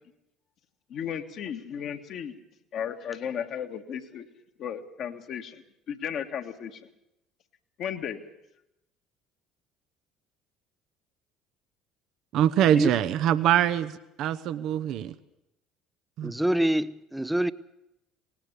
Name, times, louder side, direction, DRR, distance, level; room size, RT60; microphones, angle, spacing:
voice 1, 0.9-2.3 2.7-4.3 4.6-5.6 5.9-6.8 7.8-8.2, left 8 dB, 55° left, 5 dB, 1.8 m, -34 dB
voice 2, 12.3-15.1 16.2-16.3, right 11 dB, 55° right, 13 dB, 0.8 m, -24 dB
voice 3, 16.2-17.5, right 1 dB, 5° right, 15 dB, 0.7 m, -25 dB
19.5 x 18.5 x 8.3 m, 0.86 s
figure-of-eight pair, 60°, 0 cm